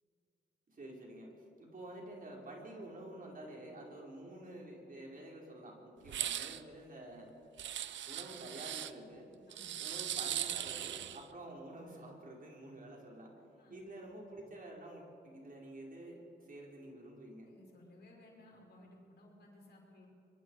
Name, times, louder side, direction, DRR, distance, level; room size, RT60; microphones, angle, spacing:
voice 1, 0.7-1.3 1.6-7.3 8.1-9.3 9.8-13.3 13.7-17.5, right 1 dB, 50° right, -1 dB, 4.9 m, -49 dB
sound 1, 6.1-6.6 7.6-8.9 9.5-11.2, right 11 dB, 85° right, 0.6 m, -39 dB
voice 2, 9.5-9.9 13.6-13.8 17.4-20.1, left 1 dB, 65° left, -1 dB, 5.6 m, -59 dB
25.0 x 22.5 x 4.8 m, 2.6 s
cardioid pair, 75°, 19 cm